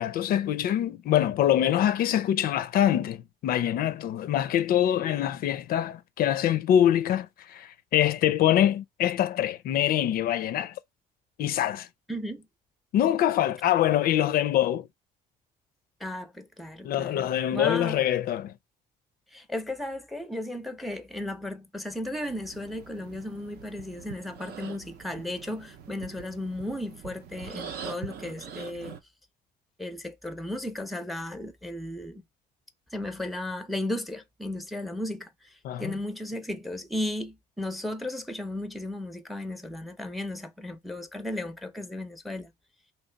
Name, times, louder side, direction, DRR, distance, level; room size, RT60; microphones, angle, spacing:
voice 1, 0.0-10.8 11.4-11.9 12.9-14.9 16.8-18.5 35.6-35.9, left 11 dB, 60° left, 0.4 m, -24 dB
voice 2, 12.1-12.5 16.0-18.0 19.3-29.0 29.8-32.2 32.9-42.5, left 1 dB, ahead, 0.5 m, -35 dB
sound 1, 22.2-29.0, right 7 dB, 65° right, 0.6 m, -43 dB
3.0 x 2.9 x 4.3 m
cardioid pair, 110°, 17 cm